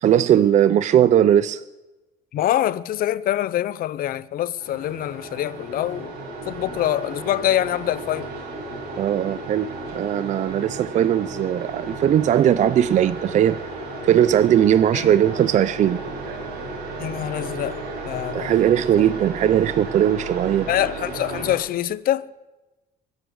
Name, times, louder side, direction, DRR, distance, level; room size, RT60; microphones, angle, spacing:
voice 1, 0.0-1.6 9.0-13.6 14.0-16.0 18.3-20.7, right 10 dB, 45° right, 0.4 m, -19 dB
voice 2, 2.3-6.2 6.5-8.3 14.9-15.4 17.0-18.7 20.7-22.3, left 12 dB, 60° left, 0.6 m, -25 dB
sound 1, 4.6-21.6, right 2 dB, 80° right, 4.9 m, -34 dB
23.0 x 8.0 x 6.4 m
cardioid pair, 110°, 17 cm